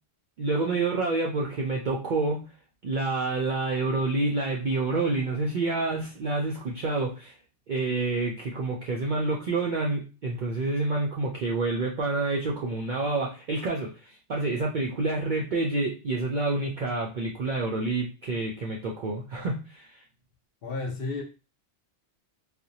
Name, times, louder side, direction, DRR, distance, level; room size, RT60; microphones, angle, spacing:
voice 1, 0.4-2.5 2.8-7.3 7.7-20.0, right 3 dB, 65° right, -2 dB, 0.5 m, -28 dB
voice 2, 20.6-21.2, left 3 dB, 60° left, 2 dB, 0.7 m, -32 dB
2.5 x 2.0 x 2.7 m, 0.32 s
omnidirectional pair, 1.3 m